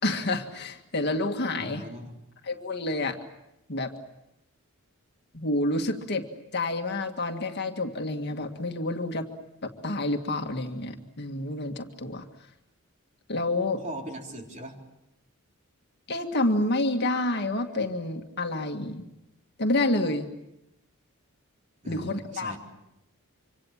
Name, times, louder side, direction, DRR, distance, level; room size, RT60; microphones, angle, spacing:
voice 1, 0.0-1.8 2.4-3.2 3.7-3.9 5.3-6.3 6.5-9.3 9.6-12.3 13.3-13.8 16.1-19.1 19.6-20.3 21.9-22.6, left 2 dB, 50° left, 5 dB, 2.0 m, -28 dB
voice 2, 1.5-2.2 13.8-14.8 21.8-22.6, right 1 dB, 35° right, 1 dB, 4.0 m, -39 dB
26.0 x 26.0 x 7.4 m, 0.86 s
head